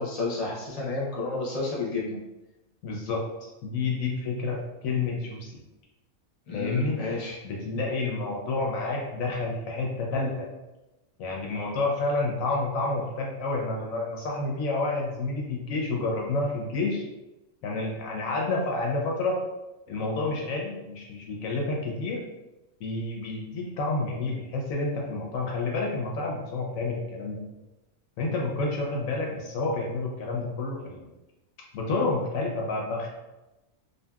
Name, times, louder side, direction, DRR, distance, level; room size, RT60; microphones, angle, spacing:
voice 1, 0.0-2.2 6.5-7.4, left 3 dB, 35° left, -5 dB, 0.6 m, -31 dB
voice 2, 2.8-5.6 6.5-7.0 7.4-10.5 11.2-17.0 17.6-19.4 19.9-22.2 22.8-27.4 28.2-31.1 31.7-33.1, left 3 dB, 70° left, -1 dB, 0.9 m, -29 dB
2.7 x 2.5 x 2.2 m, 1.0 s
omnidirectional pair, 1.5 m